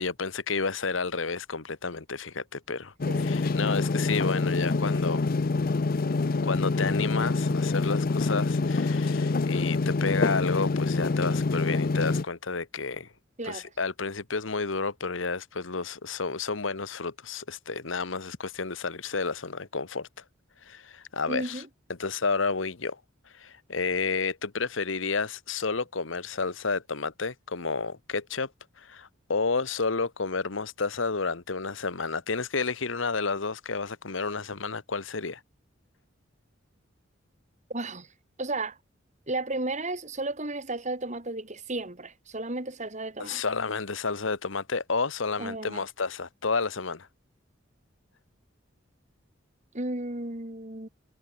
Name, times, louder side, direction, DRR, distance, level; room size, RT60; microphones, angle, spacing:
voice 1, 0.0-5.2 6.4-13.1 13.4-20.1 20.6-21.6 21.9-23.0 23.3-28.5 28.8-35.4 43.2-47.1, left 4 dB, 80° left, 1.3 m, -31 dB
sound 1, 3.0-12.2, left 3 dB, 50° left, 0.5 m, -26 dB
voice 2, 21.3-21.7 37.7-38.1 38.4-38.8 39.3-43.4 45.4-45.8 49.7-50.9, right 2 dB, 40° right, 3.6 m, -33 dB
head